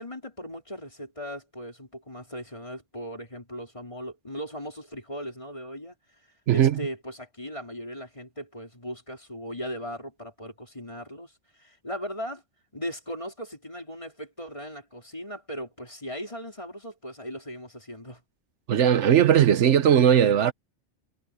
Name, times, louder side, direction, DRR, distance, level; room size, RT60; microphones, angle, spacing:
voice 1, 0.0-6.0 6.5-12.4 12.7-18.2, equal, 25° left, 4.1 m, -38 dB
voice 2, 6.5-6.8 18.7-20.5, right 9 dB, 80° right, 1.1 m, -18 dB
omnidirectional pair, 1.2 m